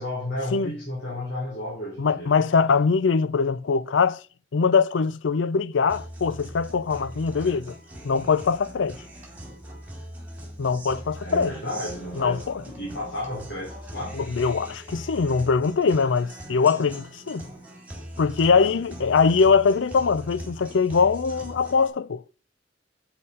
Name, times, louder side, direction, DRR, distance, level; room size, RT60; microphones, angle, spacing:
voice 1, 0.0-2.3 11.2-14.2 18.5-18.8, left 1 dB, 65° left, 4.7 m, -33 dB
voice 2, 2.0-4.2 4.5-7.7 8.0-9.0 10.6-11.5 12.2-12.6 14.1-17.5 18.2-22.2, left 5 dB, 85° left, 0.5 m, -22 dB
Guitar, 5.9-21.9, equal, 10° right, 3.7 m, -41 dB
7.9 x 7.6 x 5.5 m
head